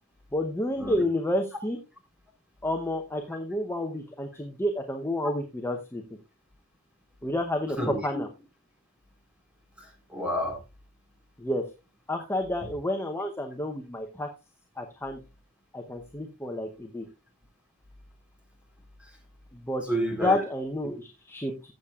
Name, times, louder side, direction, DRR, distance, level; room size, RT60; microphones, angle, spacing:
voice 1, 0.3-1.8 2.6-6.0 7.2-8.3 11.4-11.6 12.1-14.3 14.8-15.2 15.7-17.1 19.5-19.8 20.2-21.7, left 1 dB, 10° left, 3 dB, 0.8 m, -30 dB
voice 2, 7.8-8.2 9.8-10.6 19.9-20.4 20.8-20.9, equal, 5° right, 2 dB, 3.6 m, -30 dB
15.0 x 7.3 x 2.4 m, 0.28 s
head